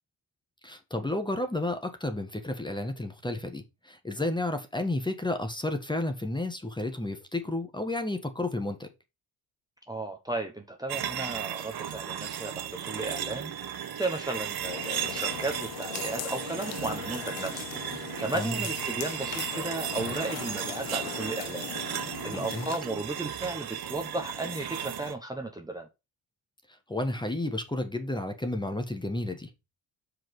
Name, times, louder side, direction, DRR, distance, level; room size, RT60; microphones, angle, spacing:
voice 1, 0.6-8.9 18.3-18.6 22.3-22.7 26.7-29.5, left 2 dB, 10° left, 1.4 m, -32 dB
voice 2, 9.9-13.5 13.9-25.9, right 2 dB, 10° right, 1.2 m, -35 dB
sound 1, 10.9-25.1, right 9 dB, 55° right, 1.2 m, -35 dB
sound 2, 14.6-22.8, left 13 dB, 75° left, 0.7 m, -40 dB
5.8 x 5.1 x 4.8 m
cardioid pair, 100°, 45 cm